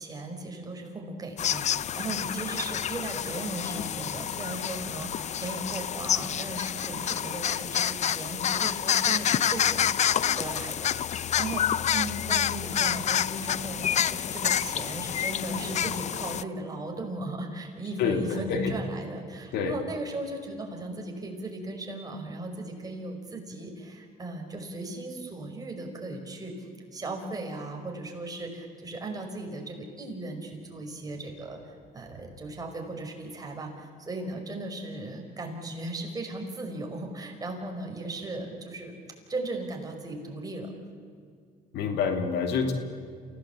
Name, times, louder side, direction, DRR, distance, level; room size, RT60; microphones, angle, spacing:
voice 1, 0.0-39.0 39.3-40.7, right 2 dB, 20° right, 2 dB, 5.3 m, -37 dB
sound 1, 1.4-16.4, left 9 dB, 45° left, 0.6 m, -28 dB
voice 2, 41.7-42.7, left 6 dB, 80° left, 6 dB, 2.9 m, -27 dB
28.0 x 17.0 x 8.4 m, 2.3 s
cardioid pair, 110°, 17 cm